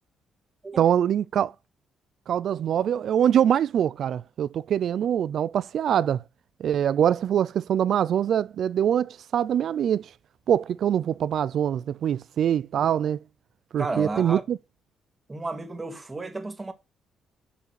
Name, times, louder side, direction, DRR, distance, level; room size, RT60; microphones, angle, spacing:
voice 1, 0.8-1.5 2.3-6.2 6.6-10.1 10.5-13.2 13.7-14.6, right 9 dB, 65° right, 0.4 m, -24 dB
voice 2, 13.8-14.4 15.3-16.7, right 2 dB, 20° right, 1.9 m, -32 dB
6.9 x 5.7 x 6.3 m
cardioid pair, 90°, 0 cm